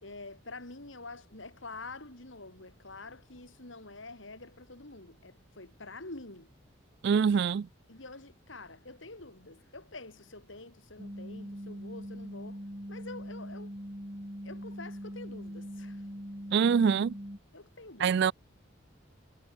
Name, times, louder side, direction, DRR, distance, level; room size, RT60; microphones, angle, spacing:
voice 1, 0.0-6.5 7.9-13.7 14.4-16.1 17.5-18.2, left 3 dB, 75° left, 3.8 m, -47 dB
voice 2, 7.0-7.7 16.5-17.2 18.0-18.3, right 6 dB, 60° right, 0.3 m, -24 dB
sound 1, 11.0-17.4, equal, 30° right, 7.4 m, -42 dB
head